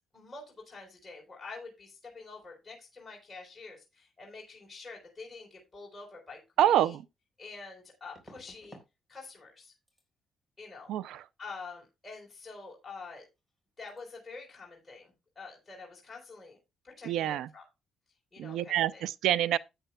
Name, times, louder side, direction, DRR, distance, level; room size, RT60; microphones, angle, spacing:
voice 1, 0.1-7.0 7.4-8.8 9.1-9.7 10.6-10.9 11.4-13.2 13.8-16.6 16.8-17.6 18.3-19.0, left 4 dB, 20° left, 4.0 m, -47 dB
voice 2, 6.6-7.0 10.9-11.2 17.0-17.5 18.4-19.6, right 12 dB, 85° right, 0.5 m, -27 dB
sound 1, 8.1-8.9 9.2-9.6 9.9-10.1 13.0-13.1 13.4-13.6 13.9-14.0, equal, 10° right, 3.8 m, -55 dB
13.5 x 8.9 x 2.3 m
cardioid pair, 90°, 0 cm